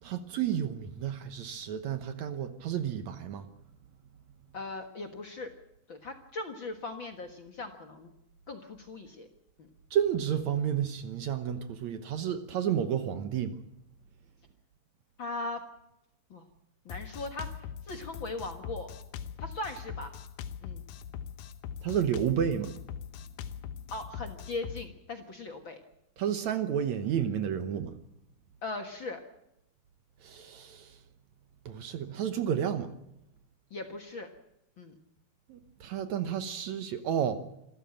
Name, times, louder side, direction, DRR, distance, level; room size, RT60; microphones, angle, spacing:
voice 1, 0.0-3.5 9.9-13.6 21.8-22.7 26.2-28.0 30.2-31.0 31.7-32.9 35.5-37.4, right 9 dB, 65° right, 9 dB, 2.1 m, -31 dB
voice 2, 4.5-5.5 5.9-8.1 8.5-9.3 9.6-9.7 15.2-15.6 16.3-16.4 16.8-17.5 17.9-18.9 19.4-20.1 20.6-20.8 23.9-25.8 28.6-29.2 33.7-34.3 34.8-34.9, left 2 dB, 45° left, 6 dB, 1.7 m, -39 dB
Drum kit, 16.9-24.8, left 8 dB, 80° left, 2.7 m, -41 dB
26.5 x 14.0 x 8.9 m, 0.84 s
omnidirectional pair, 3.9 m